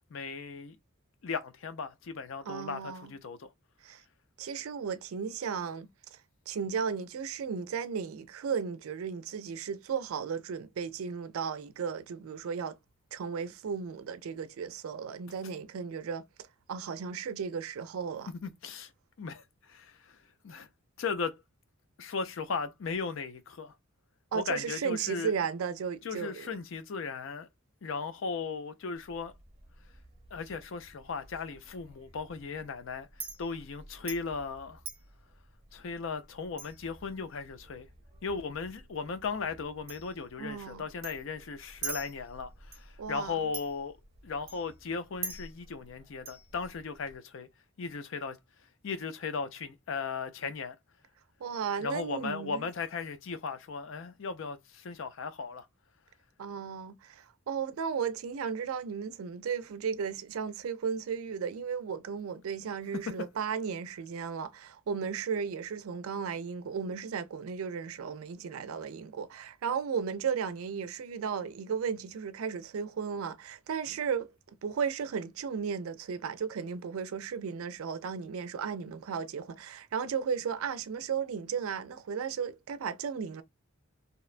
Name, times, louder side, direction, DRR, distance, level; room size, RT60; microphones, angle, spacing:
voice 1, 0.1-0.8 1.2-3.5 18.3-18.9 19.2-20.2 20.4-20.7 21.0-21.4 22.0-23.7 24.3-25.3 26.0-27.5 27.8-29.3 30.3-33.1 33.4-34.8 35.7-37.9 38.2-44.0 44.2-47.5 47.8-48.4 48.8-50.8 51.8-55.7, left 5 dB, 65° left, 0.5 m, -37 dB
voice 2, 2.5-3.1 3.8-4.0 4.4-6.2 6.5-12.8 13.1-16.2 16.7-18.3 24.3-26.5 40.4-40.8 43.0-43.4 51.4-52.6 56.4-74.3 74.6-83.4, right 6 dB, 90° right, 0.4 m, -35 dB
Chink clink, 29.0-47.2, right 5 dB, 30° right, 0.8 m, -47 dB
2.8 x 2.1 x 2.4 m
head